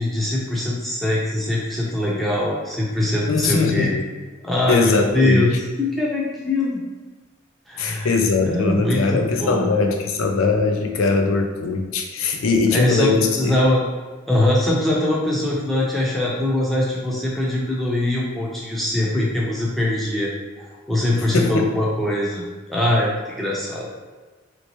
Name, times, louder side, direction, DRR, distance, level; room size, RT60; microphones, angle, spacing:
voice 1, 0.0-3.9 4.4-6.8 7.7-8.1 8.4-9.7 12.7-13.1 13.4-13.8 14.3-20.3 20.6-23.9, left 1 dB, ahead, -5 dB, 0.6 m, -22 dB
voice 2, 3.3-3.9 4.7-5.4 7.8-13.6 21.2-21.7, left 4 dB, 85° left, 3 dB, 0.5 m, -20 dB
3.1 x 3.0 x 2.9 m, 1.3 s
head